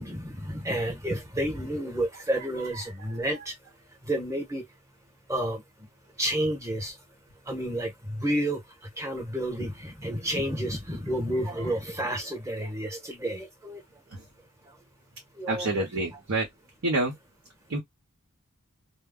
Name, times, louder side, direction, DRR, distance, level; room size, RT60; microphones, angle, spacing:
voice 1, 0.0-3.5 4.0-4.6 5.3-5.6 6.2-6.9 7.5-8.6 9.0-13.8 15.4-15.9, right 1 dB, 15° right, 0.9 m, -30 dB
voice 2, 15.5-16.5 16.8-17.1 17.7-17.8, right 2 dB, 85° right, 0.9 m, -27 dB
2.2 x 2.0 x 3.5 m
head